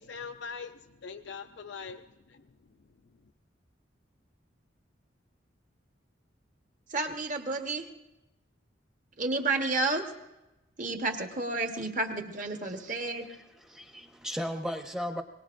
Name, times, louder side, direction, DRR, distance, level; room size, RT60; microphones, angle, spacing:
voice 1, 0.0-2.5, left 5 dB, 65° left, 7 dB, 0.4 m, -42 dB
voice 2, 6.9-7.9 9.2-10.0 10.8-13.2, right 3 dB, 40° right, 5 dB, 1.2 m, -31 dB
voice 3, 13.0-15.2, equal, 5° right, 5 dB, 0.8 m, -36 dB
22.0 x 19.0 x 2.5 m, 0.98 s
head